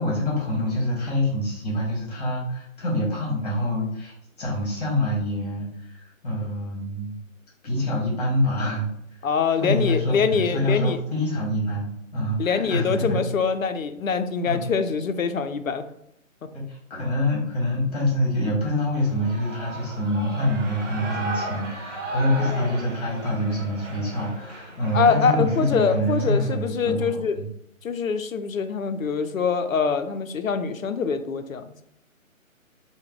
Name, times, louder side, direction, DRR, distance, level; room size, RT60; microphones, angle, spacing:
voice 1, 0.0-7.1 7.6-8.9 9.5-13.2 14.5-14.6 16.5-27.4, left 1 dB, 30° left, -4 dB, 1.2 m, -26 dB
voice 2, 9.2-11.0 12.4-15.8 24.9-27.4 27.8-31.6, left 5 dB, 75° left, 9 dB, 0.5 m, -24 dB
Shout / Cheering, 19.0-26.7, right 1 dB, 60° right, 1.0 m, -36 dB
3.0 x 2.2 x 3.6 m, 0.77 s
figure-of-eight pair, 145°, 41 cm